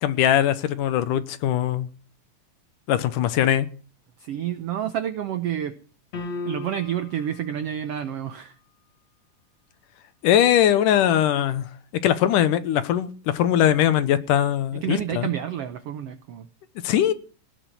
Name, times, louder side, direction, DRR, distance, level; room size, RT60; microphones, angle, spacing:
voice 1, 0.0-1.9 2.9-3.7 10.2-11.7 12.0-15.3 16.8-17.1, left 11 dB, 75° left, 2.5 m, -21 dB
voice 2, 4.2-5.8 6.4-8.6 14.7-16.5, right 10 dB, 90° right, 1.3 m, -29 dB
sound 1, 6.1-7.2, left 3 dB, 50° left, 3.4 m, -34 dB
18.0 x 6.4 x 9.5 m
omnidirectional pair, 3.9 m